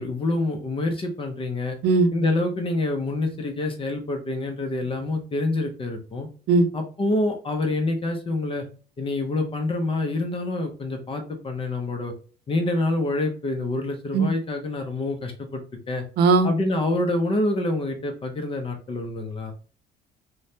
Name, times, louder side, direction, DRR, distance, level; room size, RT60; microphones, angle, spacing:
voice 1, 0.0-1.8 2.1-6.3 6.7-8.6 9.0-12.1 12.5-15.6 15.9-16.0 16.4-19.5, left 2 dB, 30° left, 4 dB, 0.6 m, -26 dB
voice 2, 16.2-16.5, right 3 dB, 80° right, 9 dB, 0.5 m, -18 dB
3.0 x 2.2 x 2.7 m, 0.38 s
cardioid pair, 110°, 17 cm